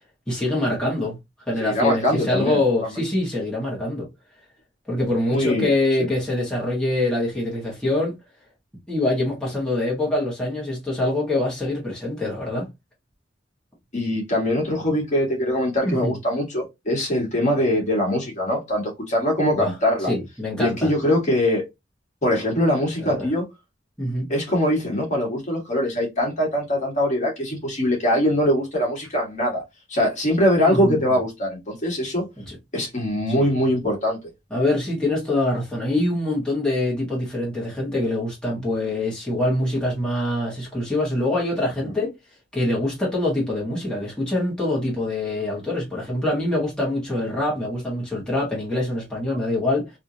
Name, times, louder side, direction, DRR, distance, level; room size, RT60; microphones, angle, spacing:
voice 1, 0.3-1.2 1.5-4.1 4.9-8.1 8.9-12.7 15.8-16.2 19.5-20.9 23.0-23.3 24.0-24.3 30.6-31.2 32.4-32.5 33.4-33.5 34.5-42.1 42.5-49.9, left 1 dB, 5° left, 1.5 m, -24 dB
voice 2, 1.6-2.6 5.3-5.7 6.0-6.1 13.9-20.1 20.6-21.6 22.2-23.4 24.3-29.6 29.9-32.2 32.7-34.2 41.8-41.9, left 1 dB, 40° left, 1.6 m, -22 dB
3.3 x 2.8 x 2.8 m
head